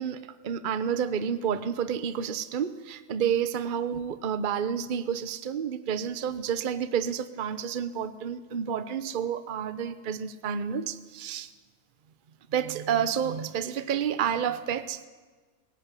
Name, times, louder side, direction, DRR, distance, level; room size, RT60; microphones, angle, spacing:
voice 1, 0.0-11.5 12.5-15.1, right 8 dB, 40° right, 0.9 m, -30 dB
19.5 x 17.0 x 9.7 m
omnidirectional pair, 1.5 m